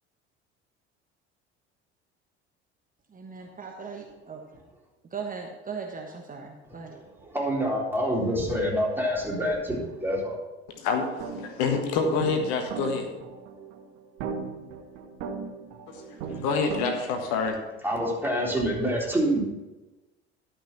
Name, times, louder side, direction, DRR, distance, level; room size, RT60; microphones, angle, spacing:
voice 1, 3.1-4.6 5.1-7.3, right 5 dB, 25° right, 2 dB, 1.2 m, -39 dB
voice 2, 7.2-10.4 16.3-16.4 17.8-19.4, equal, 5° right, -3 dB, 3.9 m, -26 dB
voice 3, 10.8-13.1 15.9-17.6, left 4 dB, 60° left, 4 dB, 1.5 m, -27 dB
sound 1, 10.9-16.9, right 5 dB, 60° right, 1.2 m, -38 dB
12.5 x 5.7 x 5.9 m, 1.1 s
figure-of-eight pair, 60°, 33 cm